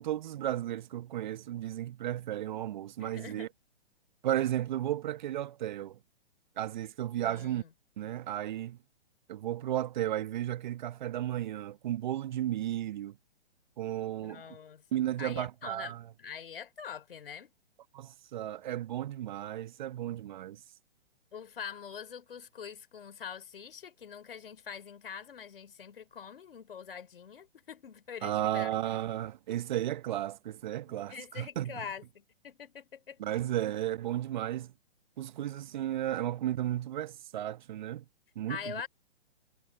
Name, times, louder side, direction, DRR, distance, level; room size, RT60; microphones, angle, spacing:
voice 1, 0.0-3.5 4.2-6.0 6.6-7.6 8.0-8.8 9.3-13.1 13.8-14.4 14.9-16.0 17.9-20.6 28.2-31.8 33.2-34.7 35.2-38.0 38.3-38.8, right 12 dB, 45° right, 1.5 m, -34 dB
voice 2, 3.0-3.5 7.2-7.7 14.2-14.8 15.2-17.5 21.3-28.8 30.9-33.4 38.5-38.9, left 7 dB, 60° left, 5.4 m, -44 dB
figure-of-eight pair, 125°, 31 cm